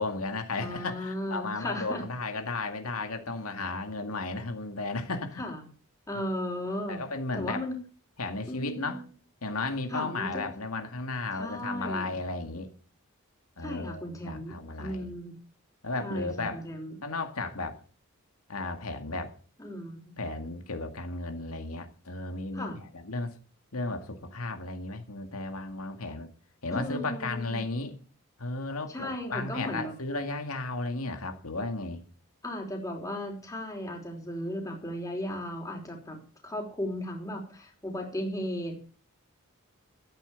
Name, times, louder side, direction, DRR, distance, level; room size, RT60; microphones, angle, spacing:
voice 1, 0.0-5.4 6.9-7.7 8.2-9.0 9.4-12.7 13.6-15.1 15.8-16.6 17.0-17.8 18.5-19.3 20.2-23.3 23.7-26.3 26.6-27.9 28.4-32.0, left 3 dB, 85° left, 6 dB, 2.1 m, -34 dB
voice 2, 0.6-2.0 5.4-5.6 6.1-7.0 7.3-7.8 8.5-9.0 9.9-10.4 11.4-12.2 13.6-15.3 16.0-17.0 19.6-20.2 22.5-22.8 26.7-27.6 28.9-29.9 32.4-36.2 36.4-38.7, left 1 dB, 15° left, 1 dB, 3.5 m, -35 dB
13.5 x 8.6 x 7.0 m, 0.41 s
head